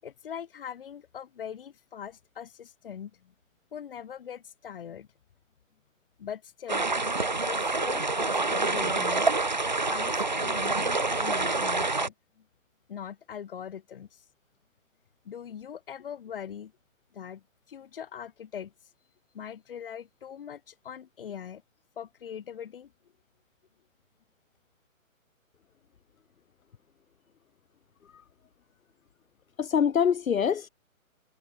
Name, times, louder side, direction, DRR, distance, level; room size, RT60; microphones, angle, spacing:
voice 1, 0.0-3.3 3.7-5.1 6.2-6.9 7.4-9.3 9.8-12.5 12.9-14.2 15.2-16.7 17.1-18.7 19.3-21.6 22.0-22.9, left 8 dB, 40° left, 7.7 m, -41 dB
sound 1, 6.7-12.1, right 3 dB, 35° right, 0.4 m, -27 dB
voice 2, 29.6-30.7, left 7 dB, 75° left, 1.3 m, -25 dB
hypercardioid pair, 170°, 41 cm